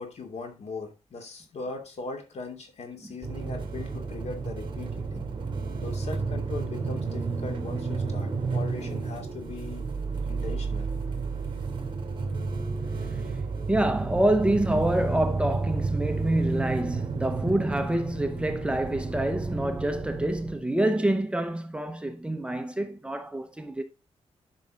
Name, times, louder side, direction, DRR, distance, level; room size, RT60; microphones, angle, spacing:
voice 1, 0.0-5.3 5.8-9.9 10.2-10.9, left 4 dB, 70° left, 2.8 m, -39 dB
sound 1, 3.2-20.6, right 4 dB, 45° right, 2.7 m, -32 dB
voice 2, 13.7-23.8, right 1 dB, 10° right, 1.0 m, -27 dB
11.0 x 5.8 x 3.9 m
wide cardioid pair, 140°, 12 cm